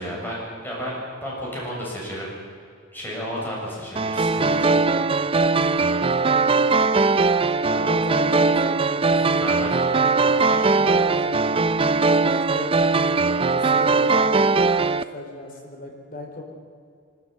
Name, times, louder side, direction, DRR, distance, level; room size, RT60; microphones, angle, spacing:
voice 1, 0.0-2.3 2.9-4.9 9.4-9.7 10.2-10.6, equal, 10° left, -5 dB, 7.1 m, -32 dB
sound 1, 4.0-15.0, right 3 dB, 30° right, 0.5 m, -20 dB
voice 2, 7.6-12.7 13.5-16.4, left 2 dB, 45° left, 1 dB, 4.4 m, -37 dB
23.5 x 13.5 x 9.2 m, 2.2 s
head